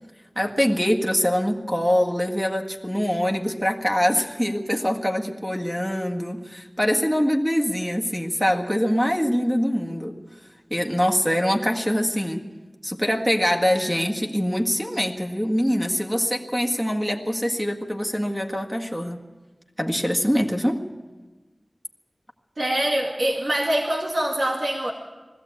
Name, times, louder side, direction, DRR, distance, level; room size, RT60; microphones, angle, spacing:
voice 1, 0.4-10.2 10.7-12.4 12.8-19.2 19.8-20.8, equal, 5° right, 2 dB, 1.8 m, -24 dB
voice 2, 22.6-24.9, right 1 dB, 85° right, 0 dB, 2.1 m, -24 dB
21.0 x 15.0 x 8.5 m, 1.2 s
wide cardioid pair, 55°, 0 cm